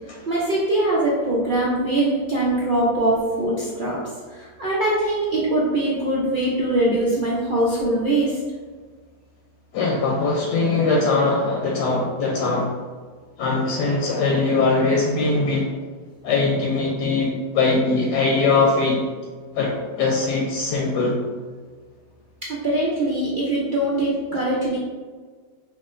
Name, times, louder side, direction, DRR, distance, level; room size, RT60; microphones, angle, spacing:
voice 1, 0.3-4.0 4.3-8.4 22.4-24.8, right 1 dB, 70° right, -6 dB, 0.4 m, -22 dB
voice 2, 9.7-12.7 13.4-15.7 16.2-19.0 19.5-21.2, left 3 dB, 80° left, -1 dB, 1.2 m, -21 dB
5.4 x 2.9 x 2.5 m, 1.5 s
omnidirectional pair, 1.8 m